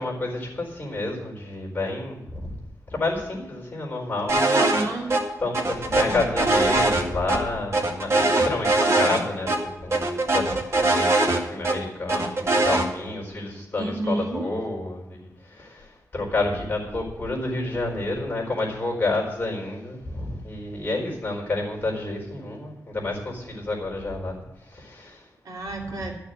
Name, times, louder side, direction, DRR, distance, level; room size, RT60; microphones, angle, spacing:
voice 1, 0.0-2.6 2.9-4.7 5.4-25.3, left 2 dB, 30° left, -2 dB, 4.4 m, -29 dB
sound 1, 4.3-4.8 5.1-5.2 5.5-7.4 7.7-9.2 9.5-9.6 9.9-11.8 12.1-12.8, right 2 dB, 50° right, 2.0 m, -21 dB
voice 2, 4.5-5.1 13.8-14.5 25.4-26.1, right 2 dB, 70° right, 0 dB, 2.8 m, -29 dB
13.0 x 6.7 x 7.9 m, 0.94 s
wide cardioid pair, 165°, 6 cm